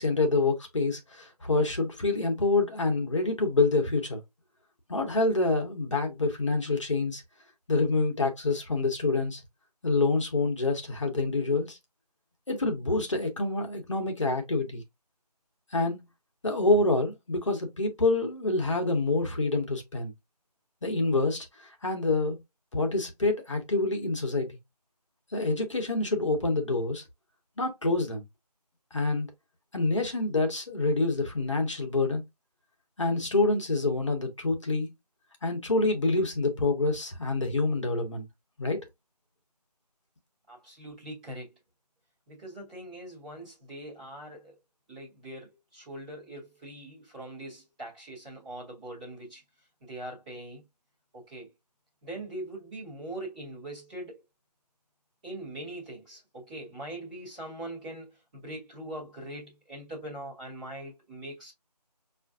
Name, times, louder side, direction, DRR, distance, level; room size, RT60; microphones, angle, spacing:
voice 1, 0.0-4.2 4.9-7.2 7.7-9.4 9.8-11.8 12.5-14.8 15.7-16.0 16.4-20.1 20.8-22.4 22.7-24.6 25.3-27.0 27.6-28.2 28.9-29.3 29.7-32.2 33.0-34.9 35.4-38.3 38.6-38.8, left 3 dB, 45° left, 0.9 m, -27 dB
voice 2, 40.5-41.5 42.3-44.6 44.9-49.4 49.8-50.6 51.1-51.5 52.0-54.2 55.2-61.5, right 1 dB, 10° right, 1.0 m, -42 dB
5.4 x 2.5 x 2.4 m
figure-of-eight pair, 165°, 21 cm